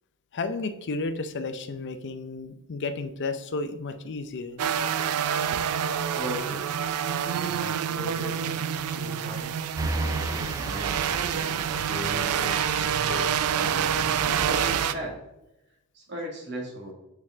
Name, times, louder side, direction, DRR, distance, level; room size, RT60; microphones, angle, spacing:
voice 1, 0.3-4.7, left 3 dB, 55° left, 9 dB, 0.6 m, -32 dB
sound 1, 4.6-14.9, right 8 dB, 90° right, 0.4 m, -27 dB
voice 2, 6.2-6.8 7.3-9.6 9.8-15.2 15.9-16.9, equal, 55° right, -1 dB, 2.0 m, -38 dB
sound 2, 9.8-14.9, right 2 dB, 15° right, 0.4 m, -34 dB
6.5 x 4.7 x 3.6 m, 0.92 s
head